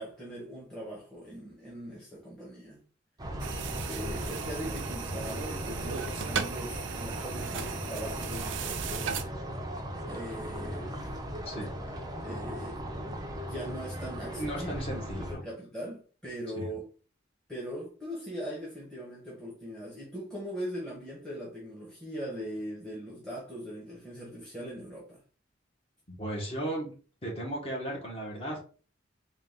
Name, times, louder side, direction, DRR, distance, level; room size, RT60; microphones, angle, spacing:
voice 1, 0.0-2.8 3.9-9.2 10.0-11.0 12.2-12.8 13.4-15.0 15.3-16.9 17.5-25.2, equal, 5° left, 1.1 m, -40 dB
sound 1, 3.2-15.3, equal, 20° right, 0.6 m, -37 dB
sound 2, 3.4-9.2, right 7 dB, 70° right, 0.5 m, -37 dB
voice 2, 11.4-12.0 14.4-15.4 16.6-16.7 26.1-26.9 27.2-28.7, right 1 dB, 30° left, 1.2 m, -36 dB
3.8 x 2.4 x 3.8 m
head